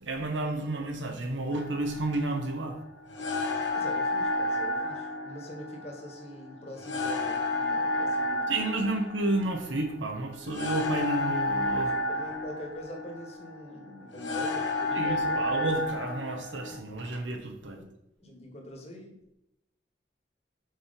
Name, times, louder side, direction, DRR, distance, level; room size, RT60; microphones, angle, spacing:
voice 1, 0.0-2.8 8.5-11.9 14.9-17.8, right 2 dB, 85° right, 4 dB, 1.2 m, -31 dB
sound 1, 1.5-16.8, left 2 dB, 85° left, 1.3 m, -31 dB
voice 2, 3.7-8.5 11.7-15.5 17.7-17.9 18.2-19.3, equal, 35° left, 2 dB, 1.4 m, -44 dB
6.1 x 4.8 x 5.2 m, 0.84 s
head